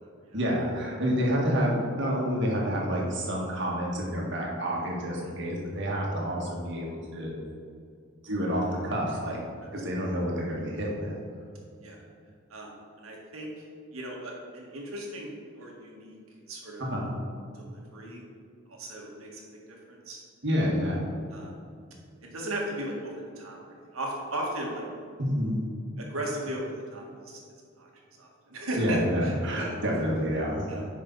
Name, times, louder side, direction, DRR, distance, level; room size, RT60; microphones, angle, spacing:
voice 1, 0.3-7.4 8.2-9.4 9.7-11.1 16.8-17.1 20.4-21.1 25.2-25.6 28.7-30.6, equal, 60° right, -2 dB, 1.8 m, -28 dB
voice 2, 12.5-13.5 13.9-15.3 15.6-16.2 16.5-16.8 17.5-18.2 18.7-19.4 19.9-20.2 21.3-21.6 22.2-24.8 26.0-27.4 27.8-27.9 28.2-29.8 30.7-30.9, right 1 dB, 85° right, -1 dB, 1.8 m, -36 dB
10.0 x 5.5 x 4.1 m, 2.3 s
head